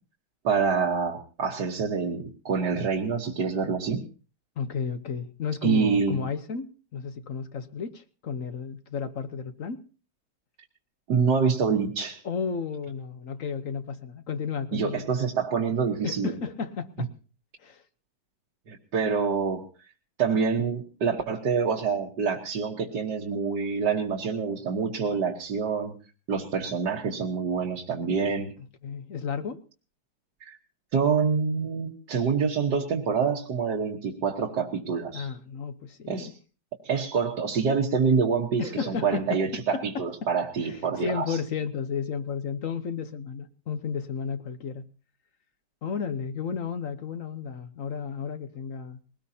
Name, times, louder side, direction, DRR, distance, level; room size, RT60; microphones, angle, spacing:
voice 1, 0.4-4.0 5.6-6.2 11.1-12.2 14.7-16.3 18.7-19.7 20.2-26.0 26.3-28.5 30.5-30.6 30.9-35.3 36.1-36.4 36.8-41.4, right 5 dB, 70° right, 2.0 m, -26 dB
voice 2, 4.6-9.8 12.2-15.1 16.0-17.1 17.6-17.8 28.8-29.6 35.1-36.3 38.6-40.1 40.6-44.9 45.8-49.0, left 6 dB, 50° left, 1.2 m, -33 dB
21.5 x 18.5 x 2.8 m
omnidirectional pair, 1.9 m